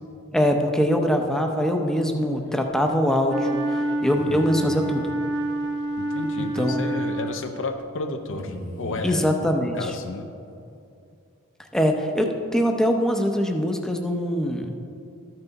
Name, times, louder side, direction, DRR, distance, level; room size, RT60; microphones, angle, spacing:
voice 1, 0.3-5.1 6.4-6.8 9.0-9.9 11.7-14.7, equal, ahead, 3 dB, 0.6 m, -23 dB
sound 1, 2.1-2.6 4.1-5.0 6.2-6.3 6.5-6.6 8.3-9.2 10.5-10.8, left 1 dB, 40° left, 1.4 m, -37 dB
Wind instrument woodwind instrument, 3.2-7.7, right 1 dB, 55° right, 0.7 m, -28 dB
voice 2, 6.0-9.2 9.8-10.3, left 3 dB, 60° left, 5 dB, 0.6 m, -32 dB
13.0 x 5.8 x 4.0 m, 2.5 s
head